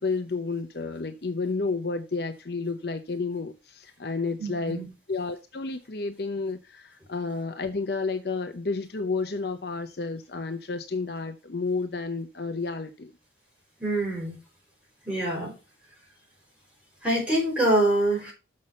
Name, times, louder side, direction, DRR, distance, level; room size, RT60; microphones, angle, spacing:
voice 1, 0.0-4.8 5.1-13.1, left 4 dB, 60° left, 0.7 m, -31 dB
voice 2, 4.4-4.9 13.8-14.4 15.0-15.5 17.0-18.3, right 1 dB, 5° right, 4.5 m, -25 dB
6.5 x 6.0 x 5.4 m
head